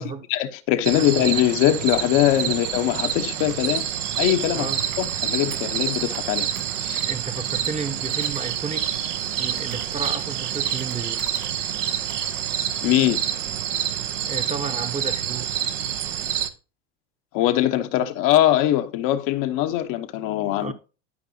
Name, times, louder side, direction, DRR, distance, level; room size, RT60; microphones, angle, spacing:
voice 1, 0.0-3.9 4.2-4.7 5.0-6.5 6.8-7.0 12.8-13.2 17.3-20.7, left 13 dB, 55° left, 1.0 m, -22 dB
sound 1, 0.8-16.5, right 10 dB, 70° right, 1.0 m, -27 dB
voice 2, 1.0-1.3 2.4-2.6 4.5-4.8 6.9-8.9 9.4-11.2 13.9-15.5 20.6-20.7, right 4 dB, 20° right, 0.9 m, -32 dB
Computer keyboard, 3.4-5.2 5.5-8.5 8.9-11.5 11.9-12.6, right 7 dB, 55° right, 2.7 m, -46 dB
12.5 x 5.3 x 2.8 m
hypercardioid pair, 80°, 37 cm